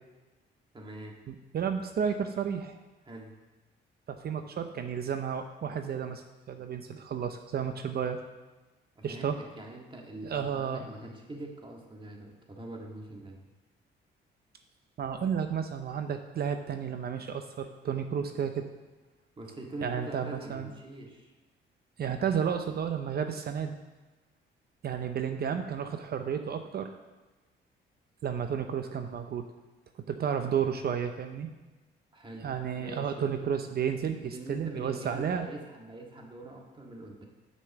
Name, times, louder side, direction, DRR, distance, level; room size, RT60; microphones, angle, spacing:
voice 1, 0.7-1.3 3.0-3.4 9.0-13.4 19.4-21.3 32.1-33.3 34.2-37.2, right 2 dB, 25° right, 0 dB, 1.7 m, -44 dB
voice 2, 1.3-2.8 4.1-8.2 9.0-9.4 10.2-10.9 15.0-18.7 19.8-20.7 22.0-23.8 24.8-26.9 28.2-29.5 30.1-31.5 32.4-35.5, right 7 dB, 50° right, 7 dB, 0.6 m, -32 dB
6.5 x 5.4 x 7.1 m, 1.2 s
cardioid pair, 90°, 20 cm